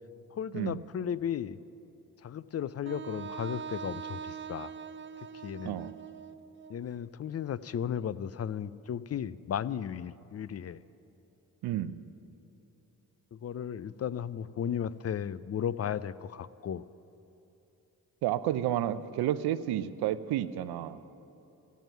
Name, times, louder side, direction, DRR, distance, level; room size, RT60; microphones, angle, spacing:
voice 1, 0.4-1.6 2.2-4.7 5.4-5.9 6.7-10.8 13.3-16.8, left 8 dB, 40° left, 18 dB, 0.5 m, -35 dB
Wind instrument woodwind instrument, 2.9-6.9, right 7 dB, 30° right, 0.6 m, -42 dB
voice 2, 5.6-5.9 11.6-12.0 18.2-21.0, right 12 dB, 85° right, 14 dB, 0.6 m, -31 dB
15.5 x 9.3 x 9.2 m, 2.9 s
supercardioid pair, 50°, 38 cm